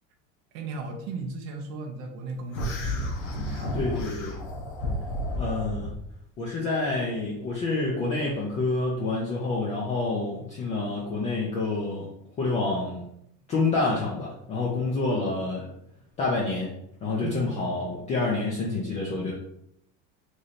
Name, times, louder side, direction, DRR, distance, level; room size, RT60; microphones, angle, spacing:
voice 1, 0.5-2.9 3.3-3.8 17.2-17.5, right 4 dB, 35° right, 3 dB, 0.5 m, -36 dB
sound 1, 2.5-6.0, left 1 dB, 55° left, 0.8 m, -31 dB
voice 2, 3.7-4.3 5.4-5.9 6.4-12.1 12.4-13.0 13.5-15.7 16.2-16.7 17.0-19.3, left 3 dB, 20° left, -4 dB, 0.4 m, -28 dB
3.1 x 2.6 x 4.0 m, 0.74 s
cardioid pair, 175°, 36 cm